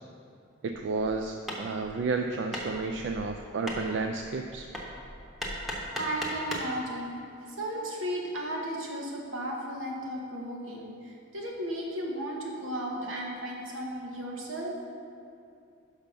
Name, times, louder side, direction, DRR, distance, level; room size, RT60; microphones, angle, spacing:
voice 1, 0.6-4.7, right 4 dB, 65° right, 4 dB, 0.3 m, -31 dB
Hammer, 1.0-6.8, equal, ahead, 0.7 m, -38 dB
voice 2, 5.4-7.1 7.5-14.8, right 1 dB, 80° right, -1 dB, 1.2 m, -35 dB
5.9 x 5.6 x 5.2 m, 2.5 s
head